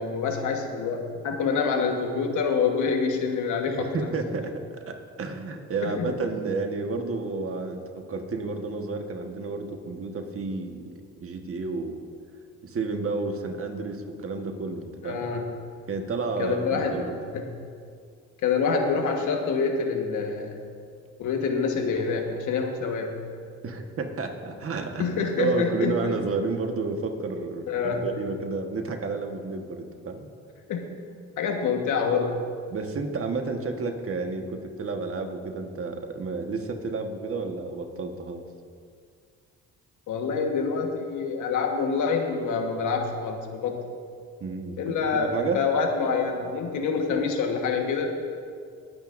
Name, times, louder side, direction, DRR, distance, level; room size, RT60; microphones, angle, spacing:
voice 1, 0.0-4.1 5.8-6.1 15.0-15.5 16.4-17.0 17.3-17.5 18.4-20.6 21.2-23.2 25.0-26.1 27.7-28.0 30.7-30.9 31.4-32.4 40.1-43.7 44.8-48.1, left 5 dB, 80° left, 3 dB, 1.4 m, -26 dB
voice 2, 3.8-10.8 11.2-12.0 12.6-15.2 15.9-17.2 23.6-25.1 25.4-30.3 32.7-38.4 44.4-44.8 45.1-45.6, right 3 dB, 45° right, 4 dB, 1.4 m, -31 dB
20.5 x 9.4 x 2.6 m, 2.2 s
cardioid pair, 90°, 30 cm